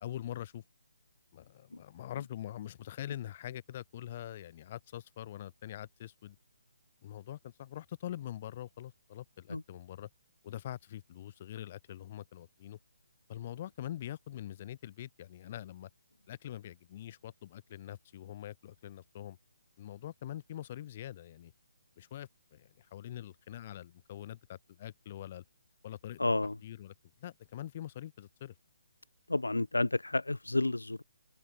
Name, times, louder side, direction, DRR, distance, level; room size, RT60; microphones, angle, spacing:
voice 1, 0.0-0.6 1.3-6.4 7.0-10.1 10.4-12.8 13.3-15.9 16.3-19.4 19.8-21.5 22.0-25.4 25.8-26.2 26.6-26.9 27.2-28.5, left 12 dB, 35° left, 2.4 m, -44 dB
voice 2, 26.2-26.5 29.3-31.0, left 2 dB, 75° left, 1.0 m, -30 dB
open air
figure-of-eight pair, 140°, 0 cm